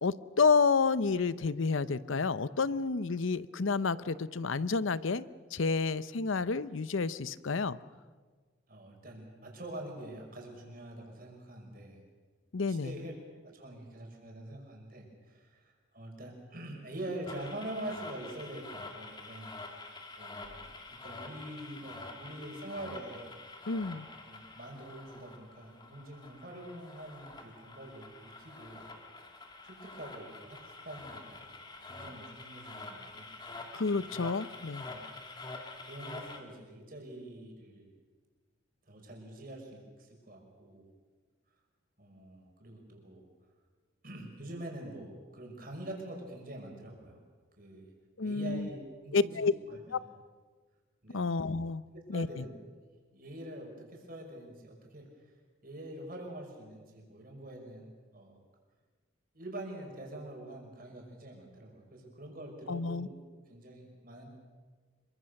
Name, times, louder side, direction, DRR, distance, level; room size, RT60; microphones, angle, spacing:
voice 1, 0.0-5.2 5.5-7.8 12.5-12.9 23.7-24.1 33.7-34.8 48.2-48.7 49.1-49.5 49.9-50.0 51.1-51.8 52.1-52.4 62.7-63.1, left 4 dB, 80° left, 16 dB, 0.7 m, -30 dB
voice 2, 8.7-12.0 12.7-19.5 20.2-23.3 24.3-28.9 29.6-31.5 31.9-33.3 34.0-34.1 34.9-35.2 35.8-37.9 38.9-40.9 42.0-43.3 44.0-47.2 47.6-47.9 48.2-49.8 51.0-51.3 51.9-52.5 53.1-55.1 55.6-58.4 59.3-64.3, right 1 dB, 45° right, 1 dB, 5.7 m, -45 dB
sound 1, 17.3-36.4, left 3 dB, 20° left, 2.1 m, -47 dB
26.5 x 23.5 x 6.5 m, 1.5 s
head